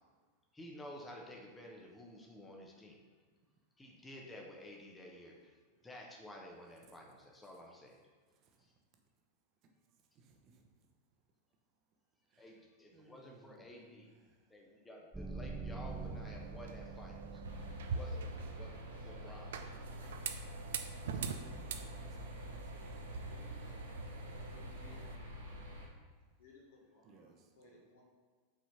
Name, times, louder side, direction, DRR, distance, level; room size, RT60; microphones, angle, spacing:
voice 1, 0.5-3.0 3.8-5.5 5.8-8.0 12.4-14.1 14.5-17.4 17.8-19.6, left 1 dB, 10° left, 0 dB, 1.0 m, -52 dB
voice 2, 12.9-14.1 21.2-23.3 27.0-27.4, right 3 dB, 35° right, 2 dB, 1.1 m, -64 dB
sound 1, 15.1-18.3, right 3 dB, 5° right, 0.5 m, -45 dB
sound 2, 15.9-25.2, right 6 dB, 60° right, 0.5 m, -45 dB
sound 3, 17.4-25.9, left 1 dB, 80° right, 1.6 m, -47 dB
voice 3, 23.2-23.8 24.3-25.2 26.4-28.0, left 3 dB, 55° left, -3 dB, 1.8 m, -62 dB
5.9 x 4.4 x 5.5 m, 1.5 s
figure-of-eight pair, 90°, 0 cm